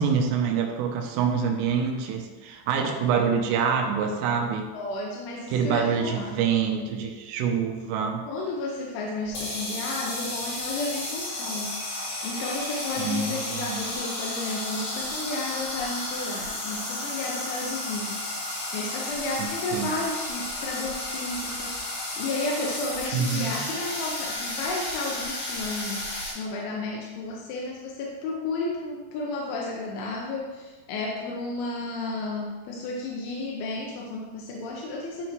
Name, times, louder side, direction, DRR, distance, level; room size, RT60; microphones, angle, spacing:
voice 1, 0.0-4.7 5.5-8.3 13.0-13.8 19.4-19.9 23.1-23.6, right 6 dB, 85° right, 3 dB, 3.4 m, -26 dB
voice 2, 2.8-3.2 4.7-6.3 8.3-26.0 26.4-35.3, left 2 dB, 85° left, -1 dB, 3.0 m, -33 dB
sound 1, 9.2-26.3, left 1 dB, 60° left, 4.0 m, -33 dB
12.5 x 4.2 x 3.1 m, 1.3 s
omnidirectional pair, 5.8 m